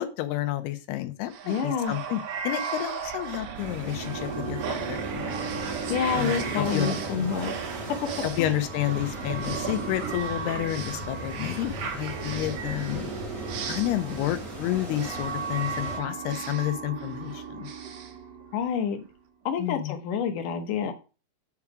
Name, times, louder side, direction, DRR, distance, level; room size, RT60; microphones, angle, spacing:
voice 1, 0.0-5.6 6.2-7.3 8.2-13.1 13.7-17.7 19.6-19.9, left 14 dB, 85° left, 8 dB, 2.8 m, -30 dB
sound 1, 1.3-18.9, right 6 dB, 80° right, 1.4 m, -35 dB
voice 2, 1.4-2.0 5.9-7.5 8.4-8.5 18.5-19.0 19.5-20.9, left 7 dB, 70° left, 6 dB, 2.3 m, -28 dB
sound 2, 3.5-16.0, right 1 dB, 25° right, 2.1 m, -38 dB
8.6 x 4.8 x 4.8 m, 0.32 s
omnidirectional pair, 4.5 m